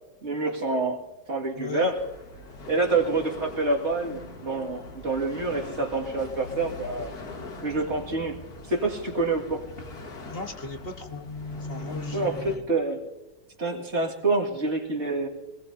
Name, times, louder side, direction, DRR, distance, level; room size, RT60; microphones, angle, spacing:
voice 1, 0.2-1.0 1.3-2.0 2.7-7.1 7.6-8.4 8.7-9.6 12.1-13.0 13.6-15.3, right 3 dB, 40° right, 0 dB, 2.3 m, -27 dB
voice 2, 1.6-1.9 9.8-9.9 10.3-11.3 11.7-12.7, left 3 dB, 35° left, 4 dB, 1.4 m, -37 dB
sound 1, 1.8-12.6, left 2 dB, 65° left, 2.2 m, -40 dB
25.0 x 20.0 x 2.7 m, 1.1 s
omnidirectional pair, 1.8 m